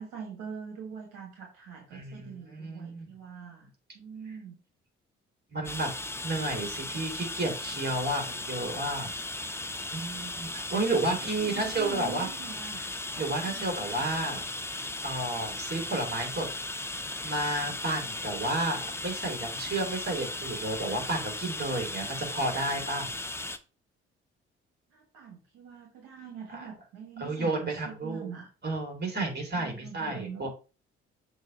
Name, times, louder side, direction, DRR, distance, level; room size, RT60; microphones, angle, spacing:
voice 1, 0.0-4.5 10.8-12.8 13.4-13.7 24.9-28.5 29.5-30.5, right 7 dB, 65° right, 0 dB, 1.6 m, -43 dB
voice 2, 1.9-3.1 5.5-5.9 6.2-9.5 9.9-12.3 13.2-14.4 15.0-16.8 17.2-23.1 26.5-26.7 27.2-28.3 28.6-30.5, right 2 dB, 30° right, 1 dB, 3.1 m, -32 dB
sound 1, 5.6-23.6, left 2 dB, 5° left, 0.7 m, -37 dB
6.4 x 2.9 x 5.1 m, 0.34 s
figure-of-eight pair, 45°, 34 cm